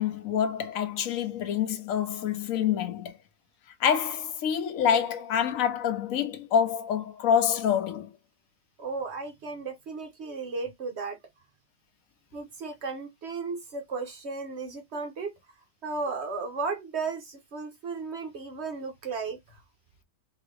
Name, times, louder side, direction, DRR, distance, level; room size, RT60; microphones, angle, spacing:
voice 1, 0.0-3.1 3.8-8.1, left 8 dB, 60° left, 1.0 m, -26 dB
voice 2, 8.8-11.2 12.3-15.3 15.8-19.6, right 4 dB, 65° right, 0.7 m, -35 dB
3.7 x 2.9 x 3.2 m
omnidirectional pair, 1.9 m